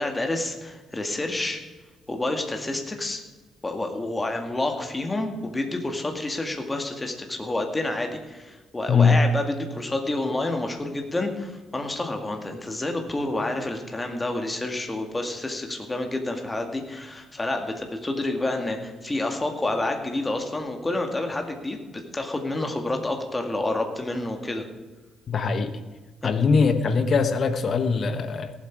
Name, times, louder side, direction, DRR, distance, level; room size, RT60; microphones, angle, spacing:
voice 1, 0.0-1.6 2.1-3.2 3.6-24.7 26.2-26.3, left 2 dB, 20° left, 4 dB, 2.0 m, -29 dB
voice 2, 8.9-9.2 25.3-25.7 26.2-28.5, left 5 dB, 50° left, 10 dB, 1.1 m, -21 dB
17.5 x 7.9 x 4.7 m, 1.2 s
cardioid pair, 90°, 0 cm